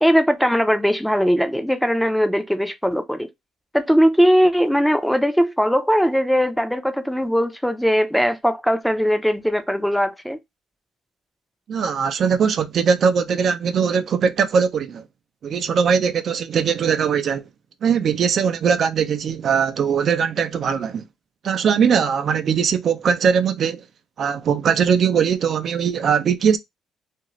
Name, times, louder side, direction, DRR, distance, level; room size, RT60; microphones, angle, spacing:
voice 1, 0.0-3.3 3.7-10.4, equal, ahead, 0.6 m, -19 dB
voice 2, 11.7-15.0 15.4-17.4 17.8-21.0 21.4-23.8 24.2-26.6, right 6 dB, 60° right, 0.4 m, -20 dB
2.5 x 2.4 x 2.9 m
supercardioid pair, 75°, 0 cm